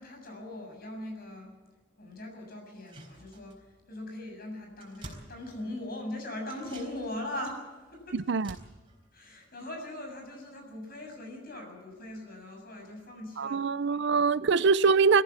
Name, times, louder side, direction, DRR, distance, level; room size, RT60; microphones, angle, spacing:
voice 1, 0.0-1.6 2.0-8.2 9.1-14.5, left 1 dB, 50° left, 7.1 m, -41 dB
sound 1, 2.7-3.8 4.1-4.2 4.5-6.0 6.4-10.2 10.5-10.6, right 1 dB, 25° right, 4.2 m, -51 dB
voice 2, 8.1-8.5 13.4-15.2, right 5 dB, 65° right, 0.5 m, -24 dB
21.5 x 14.5 x 8.3 m
head